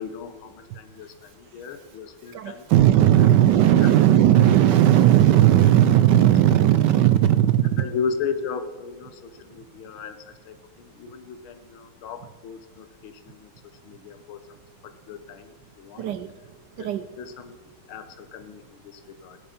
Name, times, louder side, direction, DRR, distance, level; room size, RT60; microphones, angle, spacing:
voice 1, 0.0-2.7 3.2-3.3 3.8-3.9 7.8-13.5 13.8-16.1 16.8-16.9 17.2-17.6 17.9-19.4, left 6 dB, 80° left, 10 dB, 1.7 m, -35 dB
voice 2, 2.3-7.9 16.0-16.3 16.8-17.1, right 12 dB, 75° right, 11 dB, 1.0 m, -17 dB
17.0 x 10.5 x 4.3 m, 1.5 s
omnidirectional pair, 2.2 m